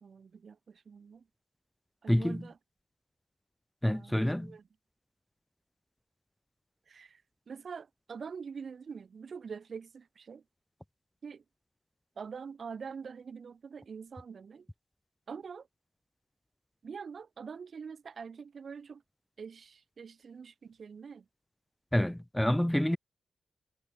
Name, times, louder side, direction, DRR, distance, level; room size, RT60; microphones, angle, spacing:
voice 1, 0.0-1.3 2.0-2.5 3.8-4.6 6.9-10.4 11.2-11.4 12.2-14.7 15.3-15.7 16.8-19.0 19.4-21.3, right 6 dB, 60° right, 1.2 m, -45 dB
voice 2, 2.1-2.5 3.8-4.6 21.9-23.0, left 1 dB, 5° left, 0.9 m, -28 dB
cardioid pair, 75°, 0 cm